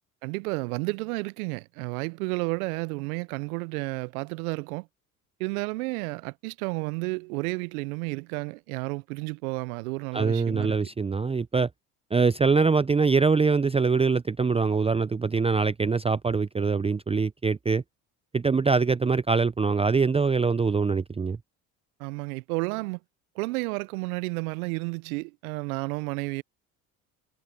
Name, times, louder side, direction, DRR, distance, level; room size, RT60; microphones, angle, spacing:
voice 1, 0.2-4.9 5.4-10.8 22.0-23.0 23.4-26.4, right 27 dB, 75° right, 0.7 m, -31 dB
voice 2, 10.1-11.7 12.1-17.8 18.3-21.4, right 4 dB, 15° right, 0.6 m, -23 dB
hypercardioid pair, 70°, 43 cm